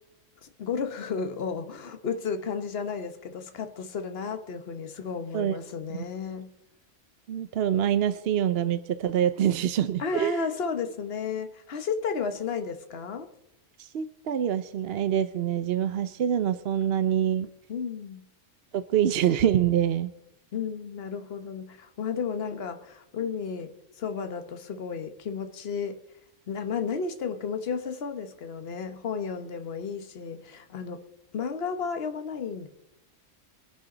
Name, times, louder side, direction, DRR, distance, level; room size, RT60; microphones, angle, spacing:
voice 1, 0.4-6.5 10.0-13.3 17.7-18.3 20.5-26.0 26.5-31.0 31.3-32.7, left 5 dB, 50° left, 7 dB, 1.3 m, -33 dB
voice 2, 7.3-10.4 13.8-17.5 18.7-20.1, right 10 dB, 60° right, 12 dB, 0.8 m, -25 dB
24.0 x 10.5 x 3.9 m, 0.91 s
omnidirectional pair, 1.3 m